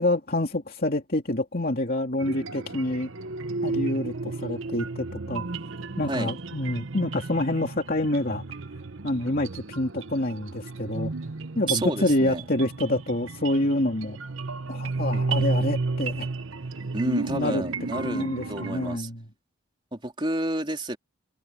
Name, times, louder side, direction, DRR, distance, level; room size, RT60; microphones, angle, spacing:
voice 1, 0.0-3.1 3.6-5.4 6.0-8.4 9.0-11.1 11.6-14.2 14.7-16.3 17.3-17.6 18.0-19.2, left 1 dB, 45° left, 2.9 m, -27 dB
sound 1, 2.2-19.0, right 3 dB, 70° right, 1.0 m, -33 dB
voice 2, 11.7-12.4 16.9-19.1 19.9-21.0, right 1 dB, 25° right, 3.5 m, -30 dB
head